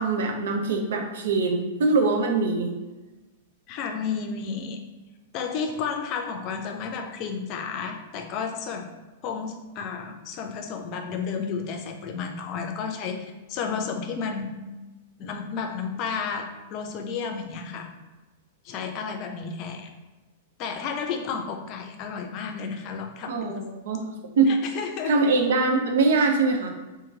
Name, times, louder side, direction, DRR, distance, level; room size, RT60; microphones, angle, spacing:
voice 1, 0.0-2.7 23.3-24.1 24.4-24.5 25.1-26.7, right 3 dB, 65° right, 2 dB, 0.6 m, -23 dB
voice 2, 3.7-4.8 5.3-8.9 9.2-14.6 15.2-17.9 18.6-19.9 20.6-23.6 24.5-25.1, left 6 dB, 40° left, 4 dB, 0.5 m, -32 dB
2.9 x 2.6 x 3.7 m, 1.2 s
figure-of-eight pair, 100°, 0 cm